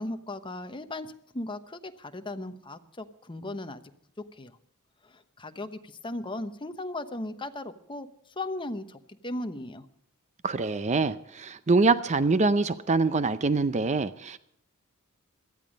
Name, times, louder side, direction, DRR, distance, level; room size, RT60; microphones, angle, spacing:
voice 1, 0.0-3.8 4.2-4.6 5.0-8.1 8.4-9.8, left 2 dB, 25° left, 8 dB, 1.0 m, -37 dB
voice 2, 10.4-14.4, right 3 dB, 30° right, 14 dB, 0.6 m, -24 dB
17.5 x 13.0 x 5.2 m, 0.68 s
head